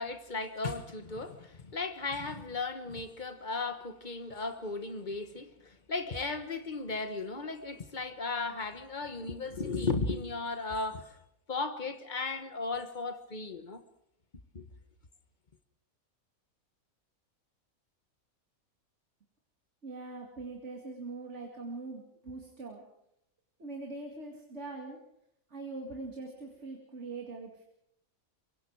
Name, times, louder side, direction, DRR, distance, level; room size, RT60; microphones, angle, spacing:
voice 1, 0.0-11.2 11.5-13.8 14.5-14.6, left 3 dB, 35° left, 1.4 m, -36 dB
voice 2, 19.8-22.8 23.6-25.0 25.5-27.6, right 3 dB, 50° right, 2.5 m, -42 dB
24.0 x 23.5 x 4.8 m
omnidirectional pair, 1.5 m